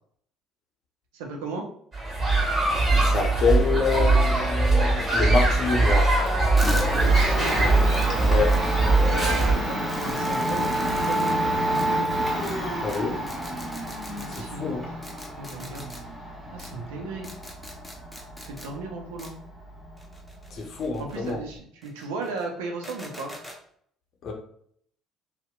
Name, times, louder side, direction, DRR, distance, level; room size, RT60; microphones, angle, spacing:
voice 1, 1.1-1.7 6.9-7.9 9.1-12.1 14.1-14.9 15.4-15.9 16.5-17.3 18.4-19.4 21.0-23.3, right 3 dB, 80° right, 2 dB, 0.4 m, -36 dB
sound 1, 1.9-9.6, right 2 dB, 30° right, 1.4 m, -21 dB
voice 2, 2.9-6.1 8.3-8.6 12.8-13.2 14.3-14.8 20.5-21.4 24.2-24.3, left 5 dB, 55° left, 2 dB, 0.6 m, -27 dB
Domestic sounds home sounds, 5.7-21.6, right 1 dB, 10° right, 1.2 m, -30 dB
sound 2, 6.6-6.9 7.4-7.5 7.9-8.1 8.5-8.6 9.2-9.5 9.9-11.3 11.7-11.9 12.4-12.5 12.9-13.0 13.3-14.4 15.0-16.0 16.6-16.7 17.2-18.7 19.2-19.3 20.0-21.3 21.8-22.5 22.8-23.6, left 1 dB, 5° left, 0.6 m, -42 dB
2.7 x 2.0 x 2.3 m, 0.64 s
hypercardioid pair, 60°, 0 cm